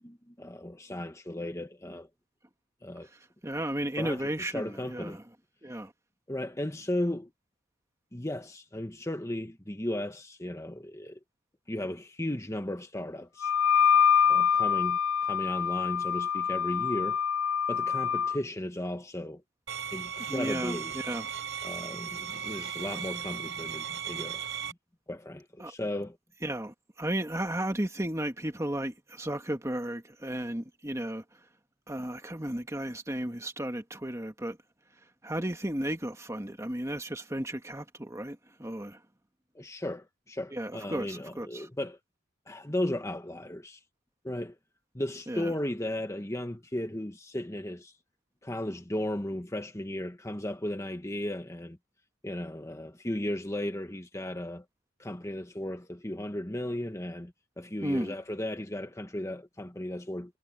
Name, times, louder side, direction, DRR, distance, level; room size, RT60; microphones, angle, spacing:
voice 1, 0.0-2.1 2.8-3.1 4.0-5.2 6.3-7.3 8.1-11.2 11.7-13.5 14.3-17.2 17.7-19.4 19.9-20.9 21.6-24.4 25.1-26.2 39.5-42.0 42.5-43.8 44.2-44.6 44.9-47.9 48.4-51.8 52.2-54.6 55.0-60.4, left 1 dB, 15° left, 1.3 m, -35 dB
voice 2, 3.4-5.2 5.6-5.9 20.3-21.3 25.6-25.7 26.4-31.2 31.9-34.6 35.2-39.0 40.5-41.7 45.3-45.5 57.8-58.1, right 1 dB, 15° right, 1.6 m, -34 dB
Wind instrument woodwind instrument, 13.4-18.4, left 7 dB, 90° left, 0.7 m, -25 dB
sound 1, 19.7-24.7, right 8 dB, 65° right, 5.4 m, -37 dB
head